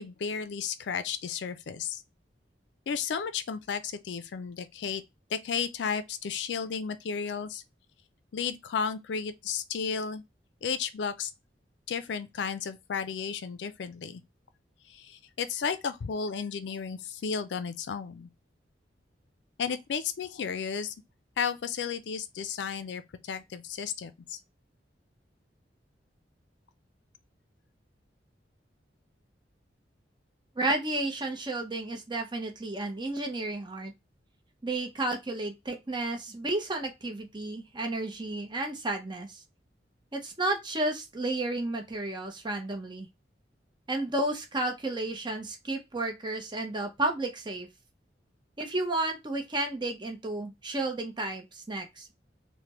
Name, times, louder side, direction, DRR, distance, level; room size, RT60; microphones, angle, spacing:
voice 1, 0.0-2.0 2.9-5.0 5.3-7.6 8.3-10.2 10.6-11.3 11.9-14.2 14.9-18.3 19.6-20.9 21.4-24.4, left 6 dB, 70° left, 0.4 m, -33 dB
voice 2, 30.6-33.9 34.6-39.4 40.1-43.1 43.9-47.7 48.6-52.1, right 2 dB, 25° right, 0.7 m, -32 dB
3.3 x 2.1 x 2.9 m
head